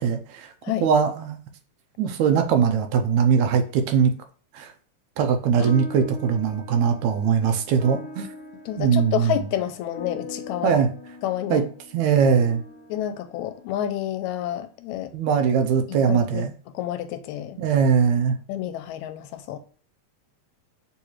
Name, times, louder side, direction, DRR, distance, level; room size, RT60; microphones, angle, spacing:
voice 1, 0.0-0.5 0.8-1.4 2.0-4.1 4.5-4.7 5.2-8.3 8.8-9.4 10.6-10.9 11.5-11.6 11.9-12.6 15.1-16.5 17.6-18.4, right 7 dB, 85° right, 1.9 m, -21 dB
sound 1, 5.6-14.3, left 3 dB, 45° left, 1.6 m, -42 dB
voice 2, 8.7-10.7 11.2-11.7 12.9-15.1 15.9-16.5 16.7-17.6 18.5-19.6, left 11 dB, 80° left, 1.9 m, -29 dB
6.8 x 2.4 x 2.9 m
omnidirectional pair, 3.3 m